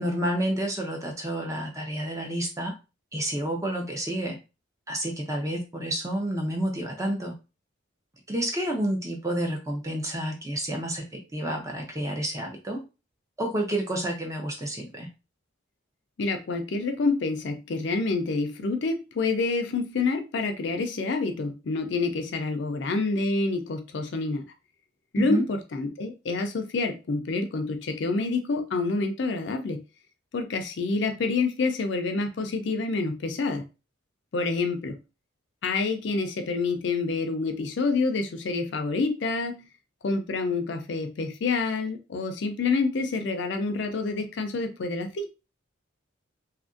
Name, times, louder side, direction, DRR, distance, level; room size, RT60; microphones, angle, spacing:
voice 1, 0.0-2.8 3.1-4.4 4.9-7.3 8.3-12.8 13.4-15.1 25.2-25.4, right 1 dB, 15° right, 2 dB, 0.5 m, -29 dB
voice 2, 16.2-24.4 25.1-29.8 30.3-33.6 34.3-35.0 35.6-39.7 40.0-45.3, left 3 dB, 60° left, 6 dB, 0.4 m, -27 dB
2.7 x 2.5 x 2.4 m, 0.29 s
head